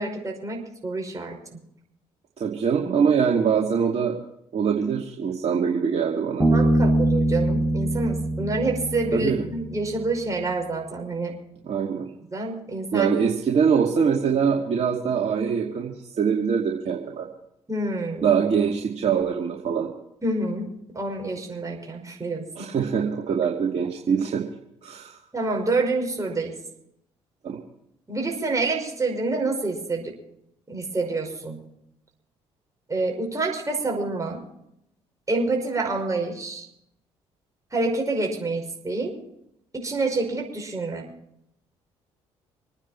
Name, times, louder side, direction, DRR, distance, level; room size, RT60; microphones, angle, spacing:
voice 1, 0.0-1.4 6.4-11.4 12.3-13.2 17.7-18.3 20.2-22.7 25.3-26.6 28.1-30.2 30.7-31.6 32.9-34.4 35.3-36.7 37.7-39.2 39.7-41.1, right 2 dB, 25° right, 1 dB, 5.5 m, -27 dB
voice 2, 2.4-4.1 4.5-6.5 9.1-9.4 11.6-12.1 12.9-17.3 18.2-19.9 22.6-24.4 24.8-25.2 27.4-27.6, right 6 dB, 50° right, -1 dB, 2.3 m, -23 dB
Bass guitar, 6.4-9.9, right 1 dB, 5° right, 7.0 m, -23 dB
26.0 x 9.8 x 4.5 m, 0.77 s
hypercardioid pair, 50°, 14 cm